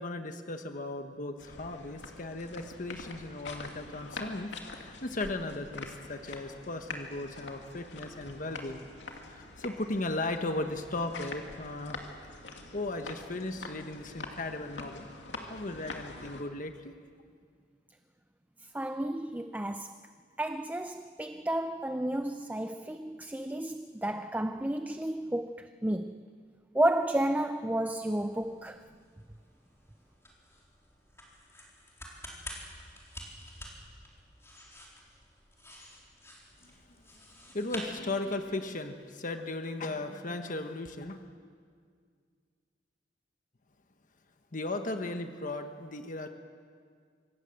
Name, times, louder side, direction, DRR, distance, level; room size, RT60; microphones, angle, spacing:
voice 1, 0.0-8.8 9.3-12.0 12.7-15.1 15.5-16.9 36.6-36.8 37.5-41.2 44.5-46.3, left 2 dB, 45° left, 6 dB, 1.2 m, -36 dB
sound 1, 1.4-16.4, left 3 dB, 85° left, 2.6 m, -45 dB
voice 2, 18.7-20.0 20.4-26.2 26.7-28.8, right 1 dB, 10° right, 9 dB, 0.5 m, -32 dB
sound 2, 27.9-38.7, left 1 dB, 15° left, 4.2 m, -49 dB
26.0 x 19.0 x 7.8 m, 2.1 s
head